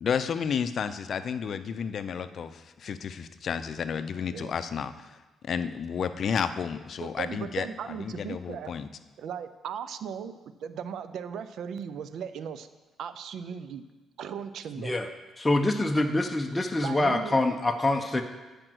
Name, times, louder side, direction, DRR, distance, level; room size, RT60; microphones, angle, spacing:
voice 1, 0.0-5.2 5.4-7.7 8.0-8.9, left 7 dB, 55° left, 11 dB, 0.5 m, -31 dB
voice 2, 7.0-8.7 9.2-10.3 10.6-12.7 13.0-13.9 14.2-14.9 16.8-17.4, right 7 dB, 70° right, 12 dB, 0.4 m, -37 dB
voice 3, 14.8-15.1 15.4-18.2, left 2 dB, 15° left, 4 dB, 0.7 m, -25 dB
8.9 x 5.1 x 6.2 m, 1.2 s
cardioid pair, 90°, 0 cm